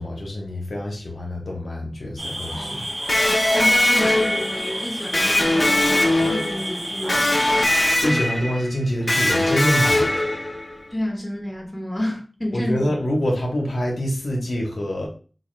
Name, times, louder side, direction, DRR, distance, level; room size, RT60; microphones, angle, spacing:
voice 1, 0.0-2.8 8.0-10.1 12.5-15.1, equal, 90° left, 0.8 m, -25 dB
sound 1, 2.2-7.7, right 1 dB, 85° right, 1.5 m, -31 dB
voice 2, 2.4-3.0 3.5-7.4 10.9-12.9, left 1 dB, 10° left, 1.3 m, -30 dB
Electric guitar, 3.1-10.8, left 1 dB, 55° left, 0.8 m, -21 dB
4.1 x 2.3 x 3.1 m
wide cardioid pair, 65°, 0 cm